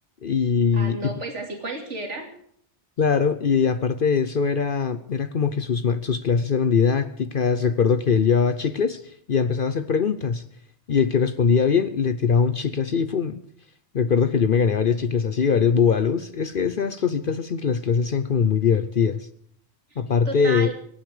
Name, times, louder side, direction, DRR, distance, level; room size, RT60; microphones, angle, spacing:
voice 1, 0.2-1.1 3.0-10.4 10.9-13.4 13.9-19.3 20.0-20.7, left 6 dB, 50° left, 12 dB, 0.9 m, -22 dB
voice 2, 0.7-2.3 19.9-20.7, right 3 dB, 75° right, 3 dB, 3.1 m, -33 dB
25.0 x 9.5 x 5.0 m, 0.63 s
omnidirectional pair, 1.2 m